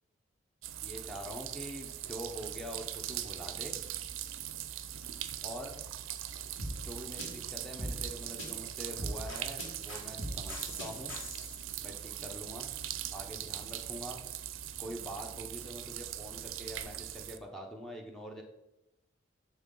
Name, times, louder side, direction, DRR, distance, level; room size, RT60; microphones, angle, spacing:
sound 1, 0.6-17.4, right 11 dB, 85° right, 0.5 m, -41 dB
voice 1, 0.8-3.8 5.4-5.7 6.8-11.1 11.8-12.7 13.1-14.2 14.8-18.4, right 1 dB, ahead, 1 dB, 0.7 m, -44 dB
sound 2, 6.6-11.6, equal, 85° left, 2.3 m, -40 dB
10.5 x 3.6 x 3.8 m, 0.91 s
head